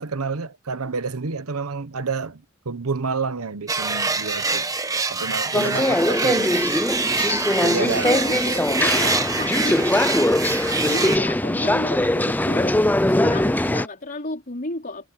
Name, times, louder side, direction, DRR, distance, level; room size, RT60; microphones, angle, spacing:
voice 1, 0.0-4.7 5.1-6.6 7.6-8.2, right 4 dB, 80° right, 1.0 m, -29 dB
sound 1, 3.7-11.2, right 3 dB, 15° right, 1.2 m, -25 dB
sound 2, 5.5-13.9, left 1 dB, 10° left, 0.6 m, -21 dB
voice 2, 7.8-10.1 10.8-12.8 13.1-15.1, left 2 dB, 40° left, 4.4 m, -32 dB
head